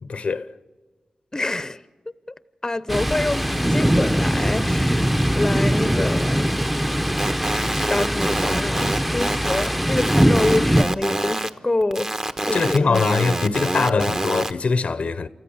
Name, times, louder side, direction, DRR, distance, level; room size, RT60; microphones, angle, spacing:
voice 1, 0.0-0.5 12.5-15.3, left 4 dB, 70° left, 0.8 m, -22 dB
voice 2, 1.3-1.8 2.6-6.5 7.9-12.1 12.4-13.0, left 2 dB, 25° left, 0.7 m, -26 dB
Thunder, 2.9-10.8, equal, 5° right, 0.7 m, -21 dB
sound 1, 7.2-11.5 11.8-14.5, right 1 dB, 30° right, 1.1 m, -26 dB
28.0 x 14.0 x 7.2 m
cardioid pair, 50°, 2 cm